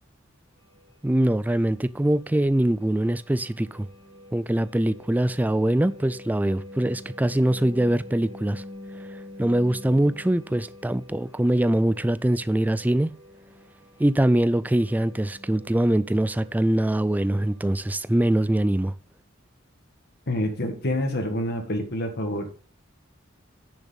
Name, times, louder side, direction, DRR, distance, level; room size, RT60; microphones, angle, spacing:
sound 1, 0.6-17.9, left 1 dB, 35° right, 2.1 m, -46 dB
voice 1, 1.0-3.9 4.3-8.6 9.4-13.1 14.0-18.9, right 1 dB, 10° right, 0.3 m, -23 dB
voice 2, 20.3-22.5, left 1 dB, 55° left, 1.8 m, -27 dB
9.9 x 6.9 x 4.0 m
head